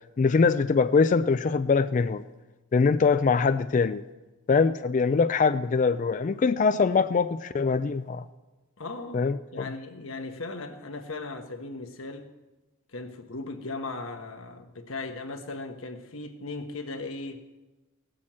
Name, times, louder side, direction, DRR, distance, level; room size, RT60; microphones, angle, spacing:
voice 1, 0.2-2.2 2.7-4.0 4.5-8.2 9.1-9.7, left 4 dB, 35° left, 12 dB, 0.3 m, -23 dB
voice 2, 8.8-9.2 9.5-12.3 12.9-17.5, left 3 dB, 85° left, 6 dB, 1.2 m, -37 dB
17.0 x 6.3 x 7.4 m, 1.1 s
head